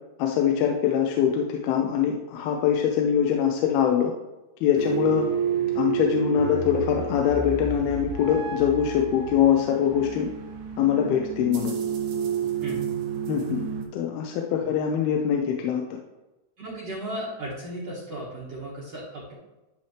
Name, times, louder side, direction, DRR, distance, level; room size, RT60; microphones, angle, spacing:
voice 1, 0.2-4.1 4.6-5.3 5.8-10.3 10.8-11.7 13.3-13.6 13.9-15.8, left 8 dB, 90° left, 2 dB, 2.5 m, -23 dB
sound 1, 4.8-13.9, right 8 dB, 75° right, 1.8 m, -30 dB
voice 2, 16.6-19.3, right 1 dB, 50° right, -8 dB, 2.2 m, -35 dB
12.0 x 4.2 x 3.2 m, 1.0 s
omnidirectional pair, 4.4 m